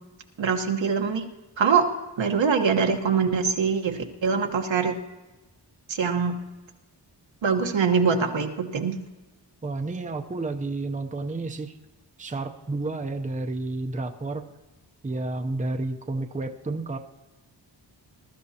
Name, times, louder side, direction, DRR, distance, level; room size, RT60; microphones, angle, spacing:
voice 1, 0.4-1.2 1.6-1.9 2.2-4.9 5.9-6.3 7.4-9.0, right 5 dB, 75° right, 4 dB, 1.3 m, -23 dB
voice 2, 9.6-11.7 12.2-14.5 15.0-17.0, right 2 dB, 15° right, 5 dB, 0.7 m, -31 dB
21.5 x 12.5 x 2.9 m, 1.1 s
wide cardioid pair, 115°, 45 cm